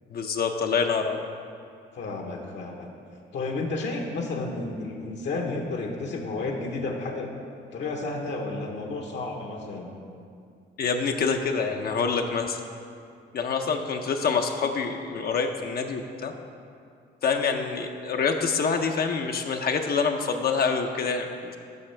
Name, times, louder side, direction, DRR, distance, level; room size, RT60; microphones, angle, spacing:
voice 1, 0.1-1.3 10.8-12.6 13.3-16.3 17.2-21.6, left 5 dB, 50° left, 4 dB, 0.6 m, -26 dB
voice 2, 1.9-2.9 3.3-7.3 7.7-9.9, left 3 dB, 65° left, 1 dB, 1.0 m, -32 dB
12.0 x 5.9 x 3.3 m, 2.3 s
cardioid pair, 90°, 20 cm